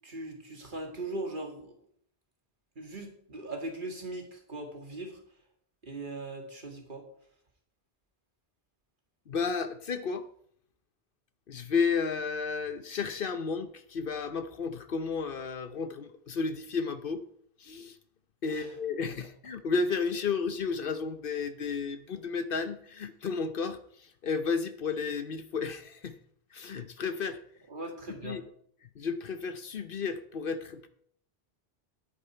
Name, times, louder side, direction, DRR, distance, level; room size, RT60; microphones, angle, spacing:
voice 1, 0.0-1.7 2.8-5.2 5.8-7.1 18.5-18.7 27.7-28.4, right 2 dB, 50° right, 2 dB, 2.3 m, -39 dB
voice 2, 9.3-10.3 11.5-17.2 17.6-18.0 18.4-26.1 26.5-27.4 28.1-28.4 29.0-30.9, left 5 dB, 60° left, 10 dB, 0.9 m, -32 dB
9.9 x 9.6 x 4.4 m, 0.64 s
omnidirectional pair, 1.1 m